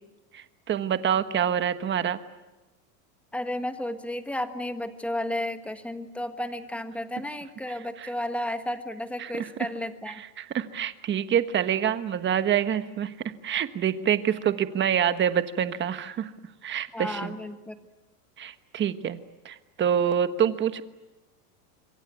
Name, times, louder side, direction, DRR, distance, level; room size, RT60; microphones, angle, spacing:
voice 1, 0.3-2.2 8.0-8.1 9.2-9.7 10.1-13.1 13.4-16.3 16.6-17.4 18.4-20.8, right 9 dB, 25° right, 11 dB, 1.3 m, -26 dB
voice 2, 3.3-10.2 16.9-17.8, left 1 dB, 5° left, 9 dB, 1.4 m, -33 dB
26.5 x 23.0 x 9.3 m, 1.1 s
supercardioid pair, 145°, 48 cm